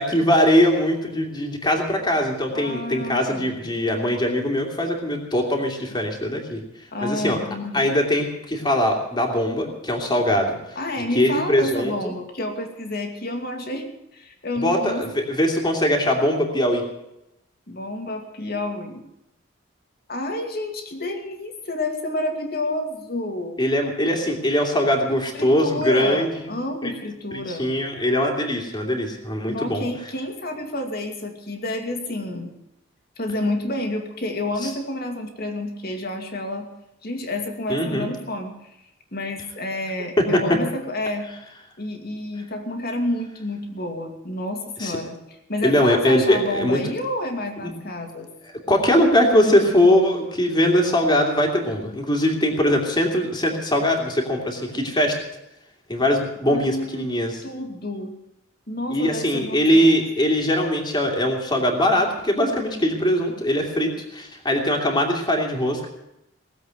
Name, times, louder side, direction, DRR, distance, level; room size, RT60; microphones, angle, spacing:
voice 1, 0.0-6.6 7.0-7.4 7.7-10.6 11.1-11.9 14.6-16.8 23.6-26.3 26.8-26.9 27.3-29.9 34.6-34.7 37.7-38.1 40.3-40.6 44.8-45.0 45.6-46.8 47.6-47.7 48.7-55.1 55.9-57.4 58.9-65.9, equal, 20° left, 1 dB, 2.8 m, -21 dB
voice 2, 2.5-3.5 6.9-7.9 10.8-13.9 14.1-15.1 17.7-19.0 20.1-23.6 25.3-27.7 29.5-32.5 33.2-36.7 37.0-38.8 39.1-41.3 41.8-48.3 56.4-57.1 57.4-58.1 58.7-60.0, left 1 dB, 50° left, 4 dB, 2.4 m, -29 dB
19.5 x 8.0 x 9.2 m, 0.85 s
head